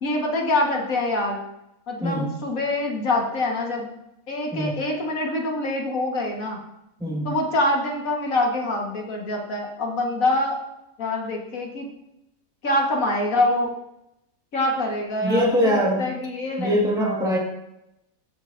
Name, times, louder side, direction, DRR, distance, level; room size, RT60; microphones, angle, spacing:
voice 1, 0.0-1.4 1.9-3.9 4.3-6.6 7.2-10.6 11.0-11.9 12.6-13.8 14.5-17.4, left 2 dB, 65° left, 1 dB, 1.9 m, -25 dB
voice 2, 2.0-2.3 4.5-4.8 7.0-7.4 15.2-16.1 16.6-17.4, equal, 5° right, -2 dB, 1.6 m, -23 dB
14.5 x 7.7 x 2.6 m, 0.85 s
omnidirectional pair, 1.6 m